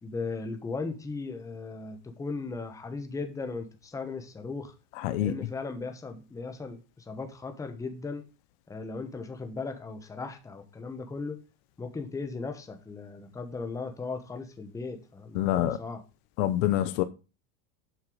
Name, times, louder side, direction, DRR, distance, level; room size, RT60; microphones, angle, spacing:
voice 1, 0.0-4.7 5.2-8.2 8.7-11.4 11.8-16.0, left 4 dB, 10° left, 1.0 m, -37 dB
voice 2, 5.0-5.3 15.3-15.8 16.4-17.0, left 13 dB, 55° left, 0.9 m, -26 dB
7.8 x 5.7 x 5.0 m
supercardioid pair, 145°, 41 cm